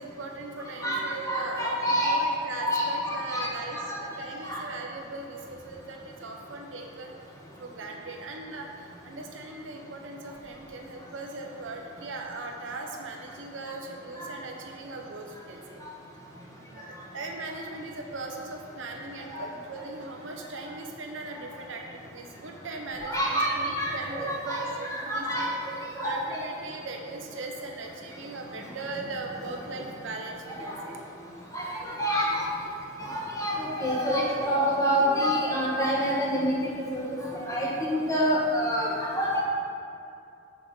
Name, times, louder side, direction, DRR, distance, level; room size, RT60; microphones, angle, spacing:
voice 1, 0.0-7.1 7.6-15.8 16.4-25.5 26.0-31.0 31.5-31.8 33.0-33.3, right 2 dB, 70° right, 1 dB, 0.8 m, -39 dB
voice 2, 1.3-2.2 2.6-4.0 4.4-4.6 14.2-14.3 19.3-19.4 23.0-26.4 30.6-30.7 31.5-32.7 33.0-36.5 36.9-37.2 37.5-39.4, equal, 15° left, -5 dB, 1.5 m, -27 dB
6.8 x 6.7 x 4.3 m, 2.7 s
head